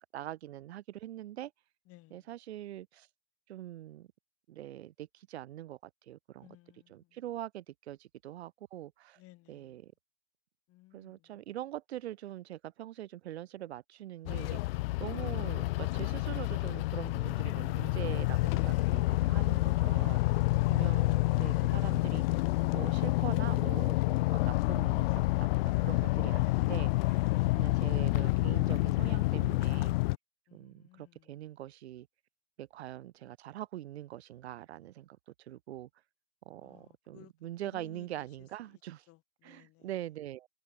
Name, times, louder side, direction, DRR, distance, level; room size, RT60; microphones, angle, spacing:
voice 1, 0.1-1.5 2.1-3.1 3.5-4.1 4.5-5.8 6.1-6.5 6.9-9.2 9.5-9.9 10.9-20.2 20.7-22.2 22.7-25.1 25.4-27.2 27.6-29.9 30.5-32.1 32.6-35.9 36.5-39.0 39.4-40.5, right 13 dB, 75° right, 4.3 m, -43 dB
voice 2, 1.9-2.3 6.4-7.2 9.2-9.8 10.7-11.3 27.3-27.7 30.5-31.3 36.6-37.3 37.6-38.3 39.1-39.9, left 18 dB, 45° left, 4.1 m, -59 dB
sound 1, 14.3-30.2, left 20 dB, 60° left, 0.5 m, -28 dB
hypercardioid pair, 100°, 33 cm